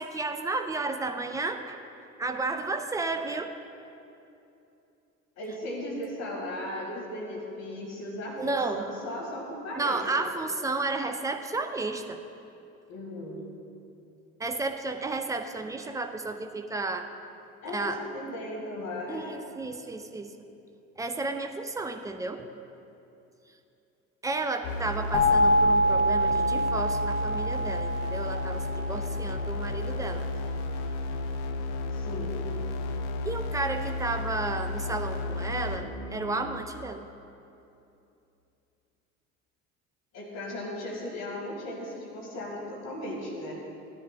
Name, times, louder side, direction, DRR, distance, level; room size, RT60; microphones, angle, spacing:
voice 1, 0.0-1.8 2.2-3.5 8.4-8.9 9.8-12.2 14.4-17.1 17.7-18.0 19.1-20.5 21.0-22.5 24.2-30.3 33.2-37.1, right 3 dB, 10° right, 6 dB, 0.3 m, -32 dB
voice 2, 5.4-10.3 12.9-13.4 17.6-19.4 31.9-32.4 40.1-43.5, left 1 dB, 40° left, -2 dB, 1.7 m, -36 dB
sound 1, 24.6-36.6, left 2 dB, 55° left, 0.7 m, -33 dB
sound 2, 25.1-29.9, equal, 15° left, 2.3 m, -26 dB
15.5 x 10.0 x 2.2 m, 2.8 s
figure-of-eight pair, 60°, 41 cm